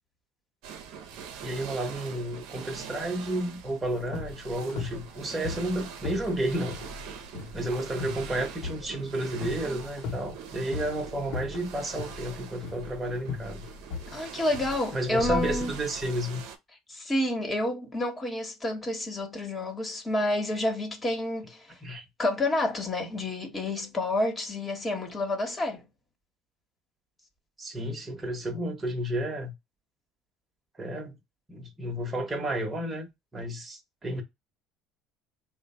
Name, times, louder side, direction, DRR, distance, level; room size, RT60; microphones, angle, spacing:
sound 1, 0.6-16.6, right 7 dB, 70° right, 0.7 m, -43 dB
voice 1, 1.4-6.8 7.5-13.6 14.2-14.3 14.9-16.4 21.8-22.0 27.6-29.5 30.8-31.1 31.5-34.2, right 1 dB, 20° right, 1.1 m, -32 dB
sound 2, 3.8-16.1, left 5 dB, 70° left, 0.8 m, -38 dB
voice 2, 14.1-15.7 16.9-21.8 22.2-25.9, left 1 dB, 25° left, 1.2 m, -29 dB
3.2 x 2.1 x 4.2 m
supercardioid pair, 85°, 0 cm